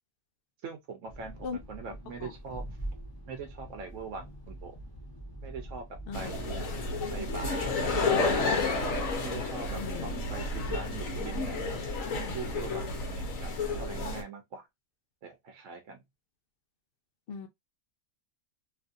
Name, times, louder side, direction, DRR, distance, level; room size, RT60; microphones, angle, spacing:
voice 1, 0.6-2.6 3.3-4.8 5.4-6.6 7.1-8.6 9.2-14.7 15.2-16.0, right 5 dB, 70° right, 1.0 m, -42 dB
sound 1, 1.1-13.9, right 1 dB, 20° left, 0.9 m, -44 dB
sound 2, 6.1-14.2, left 3 dB, 85° left, 1.3 m, -31 dB
voice 2, 9.8-10.1 17.3-17.5, left 5 dB, 55° left, 0.7 m, -38 dB
3.0 x 2.5 x 2.5 m
omnidirectional pair, 1.4 m